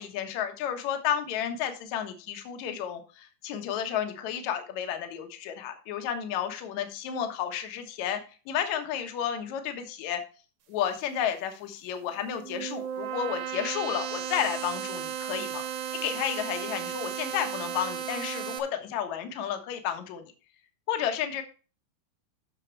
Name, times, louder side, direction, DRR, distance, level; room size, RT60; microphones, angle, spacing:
voice 1, 0.0-8.2 8.5-10.2 10.7-15.6 16.0-20.2 20.9-21.4, left 9 dB, 70° left, 6 dB, 1.7 m, -32 dB
sound 1, 12.1-18.6, right 9 dB, 65° right, 2.6 m, -35 dB
9.7 x 6.3 x 4.6 m, 0.35 s
omnidirectional pair, 5.3 m